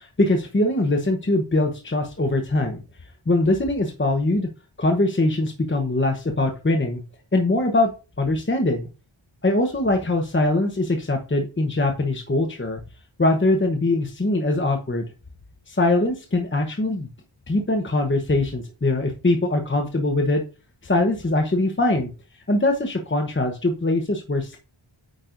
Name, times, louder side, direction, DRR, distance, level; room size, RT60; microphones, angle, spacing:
voice 1, 0.0-2.8 3.3-4.5 4.8-7.0 7.3-7.9 8.2-8.9 9.4-12.8 13.2-15.0 15.7-17.1 17.5-20.4 20.8-22.1 22.5-24.6, left 2 dB, 25° left, 3 dB, 1.0 m, -22 dB
9.1 x 5.4 x 2.6 m, 0.32 s
wide cardioid pair, 75°, 48 cm